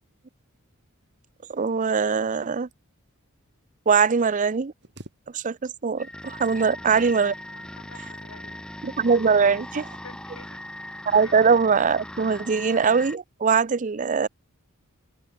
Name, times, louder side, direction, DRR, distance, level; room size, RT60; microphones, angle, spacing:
voice 1, 1.5-2.7 3.9-4.7 5.3-7.3 8.8-9.9 11.1-14.3, right 5 dB, 35° right, 0.5 m, -22 dB
sound 1, 4.8-5.9 6.2-6.9 7.8-8.6 9.2-9.6 10.0-10.3, right 1 dB, 50° right, 6.9 m, -50 dB
sound 2, 6.0-13.2, left 1 dB, 5° left, 0.9 m, -39 dB
voice 2, 7.5-8.7 10.0-10.7 11.2-11.4, left 4 dB, 85° left, 4.0 m, -49 dB
head